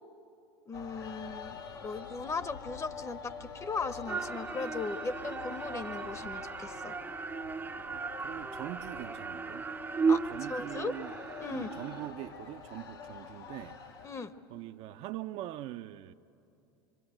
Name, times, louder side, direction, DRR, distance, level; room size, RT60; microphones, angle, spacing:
sound 1, 0.7-14.1, left 5 dB, 85° left, 2.7 m, -46 dB
voice 1, 0.7-7.0 10.1-10.2 10.5-10.9 11.4-11.7 14.0-14.3, left 4 dB, 25° left, 1.0 m, -38 dB
sound 2, 4.1-12.1, right 5 dB, 15° right, 0.7 m, -35 dB
voice 2, 7.7-9.7 10.3-11.1 11.5-13.8 14.5-16.1, right 14 dB, 55° right, 0.7 m, -42 dB
24.5 x 24.5 x 9.0 m
hypercardioid pair, 90°, 12 cm